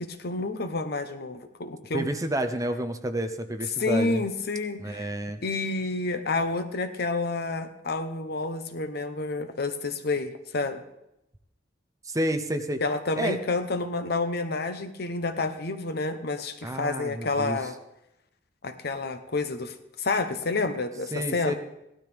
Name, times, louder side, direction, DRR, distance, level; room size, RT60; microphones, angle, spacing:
voice 1, 0.0-2.1 3.8-5.1 5.4-10.8 12.8-17.8 18.6-21.5, left 3 dB, 55° left, 8 dB, 0.9 m, -29 dB
voice 2, 1.9-4.2 4.8-5.4 12.0-12.8 13.2-13.4 16.6-17.6 21.1-21.5, right 1 dB, 15° right, 7 dB, 0.7 m, -29 dB
17.0 x 12.5 x 3.5 m, 0.86 s
head